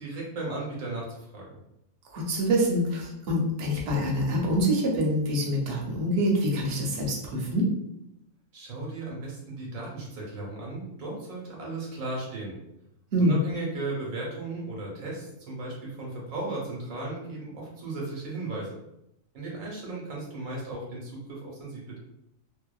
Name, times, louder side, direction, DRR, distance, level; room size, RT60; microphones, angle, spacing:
voice 1, 0.0-1.6 8.5-12.6 13.2-18.8 19.3-22.0, right 2 dB, 85° right, -3 dB, 1.2 m, -36 dB
voice 2, 2.1-7.7 13.1-13.4, equal, 60° right, -3 dB, 0.9 m, -25 dB
2.6 x 2.1 x 2.3 m, 0.82 s
omnidirectional pair, 1.4 m